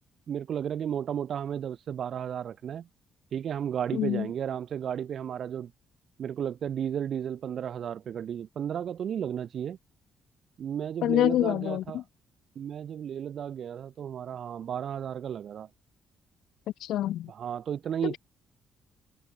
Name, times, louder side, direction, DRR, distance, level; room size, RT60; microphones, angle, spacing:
voice 1, 0.3-2.9 3.3-5.7 6.2-9.8 10.6-12.0 12.6-15.7 17.3-18.2, right 9 dB, 60° right, 0.8 m, -33 dB
voice 2, 3.9-4.3 11.0-12.0 16.8-17.3 18.0-18.2, left 13 dB, 80° left, 0.5 m, -26 dB
cardioid pair, 90°, 0 cm